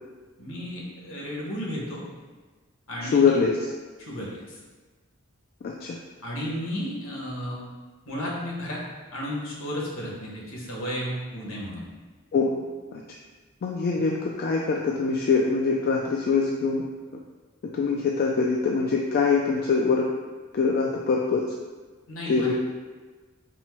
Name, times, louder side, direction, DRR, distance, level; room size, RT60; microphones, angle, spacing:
voice 1, 0.4-2.0 2.9-3.4 4.0-4.6 6.2-7.6 8.0-8.8 9.1-11.8 13.9-14.0 22.1-22.5, equal, 70° left, -4 dB, 1.1 m, -33 dB
voice 2, 3.0-3.6 5.6-6.0 12.3-12.6 12.9-13.0 13.6-16.8 17.7-20.1 20.5-21.4 22.3-22.5, left 4 dB, 45° left, -1 dB, 0.3 m, -23 dB
4.3 x 2.1 x 4.3 m, 1.3 s
head